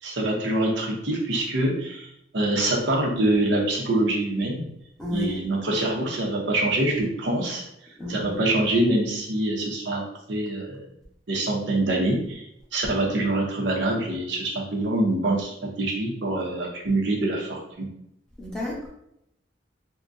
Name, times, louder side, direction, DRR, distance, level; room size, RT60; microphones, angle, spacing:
voice 1, 0.0-4.7 5.1-7.6 8.1-10.0 10.3-10.9 11.3-12.5 12.7-17.9, right 1 dB, 75° right, 0 dB, 0.7 m, -25 dB
voice 2, 5.0-5.4 8.0-8.4 18.4-18.9, left 1 dB, 5° left, -6 dB, 0.9 m, -31 dB
3.6 x 2.1 x 2.5 m, 0.78 s
head